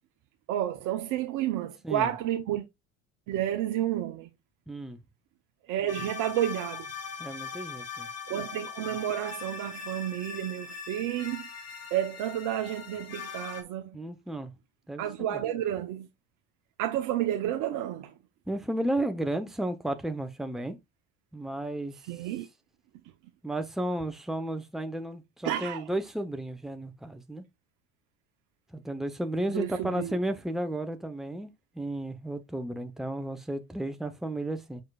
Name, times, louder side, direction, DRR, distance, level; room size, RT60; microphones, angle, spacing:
voice 1, 0.5-2.6 3.3-4.3 5.7-6.9 8.3-11.4 11.9-14.0 15.0-16.1 16.8-18.1 22.1-22.5 25.4-25.8 29.5-30.2, right 12 dB, 60° right, 1.0 m, -31 dB
voice 2, 4.7-5.0 7.2-8.1 13.9-14.5 14.9-15.4 18.5-20.8 21.3-22.0 23.4-27.4 28.7-34.8, right 1 dB, ahead, 1.1 m, -33 dB
sound 1, 5.9-13.6, left 6 dB, 45° left, 2.5 m, -41 dB
6.6 x 6.4 x 2.5 m
hypercardioid pair, 65°, 36 cm